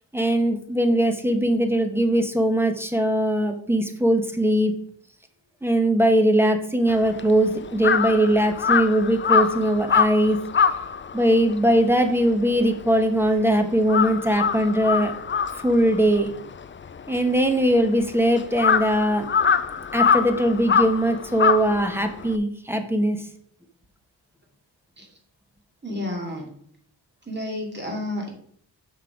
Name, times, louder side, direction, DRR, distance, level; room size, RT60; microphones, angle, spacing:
voice 1, 0.1-4.7 5.6-10.4 11.1-15.1 15.6-16.3 17.1-19.3 19.9-23.2, right 1 dB, 5° right, 5 dB, 1.1 m, -21 dB
Crow, 6.9-13.4 13.7-22.4, left 6 dB, 30° left, 0.4 m, -24 dB
voice 2, 25.8-26.5 27.3-28.3, left 1 dB, 25° right, 0 dB, 2.6 m, -30 dB
6.1 x 5.8 x 4.9 m, 0.64 s
wide cardioid pair, 85°, 42 cm